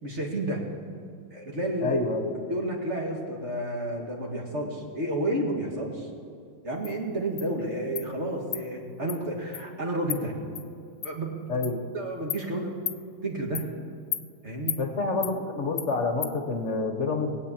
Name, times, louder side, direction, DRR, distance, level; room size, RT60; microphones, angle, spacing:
voice 1, 0.0-0.6 1.3-2.0 2.5-6.1 6.6-10.3 11.0-11.5 11.9-12.8 13.2-13.7 14.4-14.8, right 1 dB, 40° right, 0 dB, 2.3 m, -31 dB
voice 2, 1.8-2.3 11.5-11.8 14.8-17.4, left 3 dB, 40° left, 6 dB, 1.5 m, -28 dB
Insect, 6.8-6.9 7.4-7.5 8.0-8.1 8.5-8.6 9.1-9.2 9.5-9.6 10.1-10.2 10.6-10.7 11.0-11.1 11.6-11.7 12.3-12.4 12.9-13.0 13.6-13.7 14.1-14.2 14.7-14.8 15.2-15.3 15.8-15.9 16.2-16.3, left 11 dB, 65° left, 1.1 m, -32 dB
20.5 x 8.4 x 7.4 m, 2.4 s
omnidirectional pair, 2.0 m